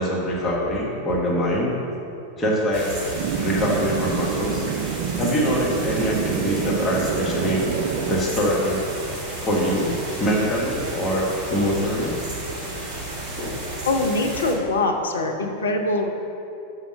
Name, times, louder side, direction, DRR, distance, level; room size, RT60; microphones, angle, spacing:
voice 1, 0.0-1.7 2.4-2.9 3.4-4.7 5.2-7.6 8.1-8.8 9.4-12.2 13.2-13.6, equal, 20° left, -4 dB, 1.5 m, -24 dB
sound 1, 2.7-14.5, right 2 dB, 25° right, 1.9 m, -33 dB
sound 2, 3.1-8.2, right 9 dB, 50° right, 0.4 m, -27 dB
voice 2, 13.9-16.1, left 2 dB, 70° left, 2 dB, 0.8 m, -23 dB
5.7 x 5.7 x 6.4 m, 2.8 s
figure-of-eight pair, 90°, 0 cm